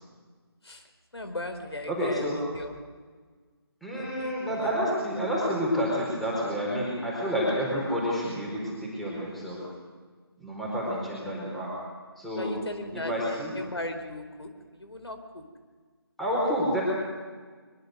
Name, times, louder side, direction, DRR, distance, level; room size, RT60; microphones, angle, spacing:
voice 1, 1.1-2.7 3.9-4.7 12.4-13.3 13.5-15.4, left 2 dB, 80° left, 7 dB, 4.4 m, -38 dB
voice 2, 1.9-2.4 3.8-9.6 10.4-11.7 12.2-12.5 12.9-13.5 16.2-16.8, equal, ahead, -6 dB, 4.6 m, -29 dB
23.5 x 22.5 x 6.7 m, 1.5 s
figure-of-eight pair, 160°, 13 cm